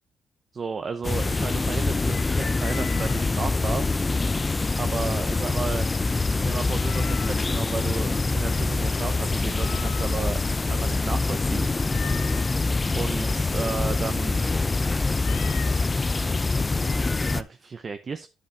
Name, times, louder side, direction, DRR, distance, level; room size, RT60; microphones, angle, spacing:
voice 1, 0.5-3.9 4.8-5.9 6.4-10.4 10.7-11.7 12.9-14.5 16.8-18.3, right 5 dB, 40° right, 0.8 m, -33 dB
sound 1, 1.0-17.4, left 3 dB, 25° left, 0.6 m, -25 dB
Meow, 2.6-3.3 6.8-7.5 9.6-10.4 11.8-12.6 15.2-15.8, left 10 dB, 75° left, 0.4 m, -40 dB
10.5 x 7.6 x 3.4 m
cardioid pair, 90°, 0 cm